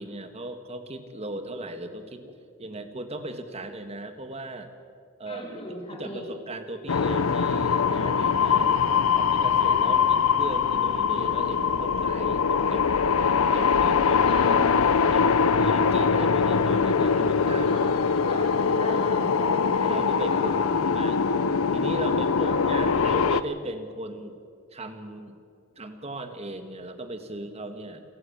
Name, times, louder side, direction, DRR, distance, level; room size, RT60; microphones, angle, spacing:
voice 1, 0.0-4.7 5.2-5.4 5.9-8.7 9.1-12.8 13.5-14.2 15.1-15.3 15.6-17.8 18.3-18.4 18.7-19.0 19.8-21.2 21.7-24.4 24.7-25.4 25.8-28.0, right 1 dB, 30° right, 8 dB, 1.5 m, -37 dB
voice 2, 5.2-6.3 8.5-8.9 9.8-10.2 14.3-14.8 17.7-18.5 18.8-19.6 20.3-20.8 22.0-22.7, left 1 dB, 25° left, 0 dB, 4.6 m, -38 dB
sound 1, 6.9-23.4, left 6 dB, 75° left, 0.6 m, -22 dB
28.5 x 11.0 x 8.6 m, 2.2 s
head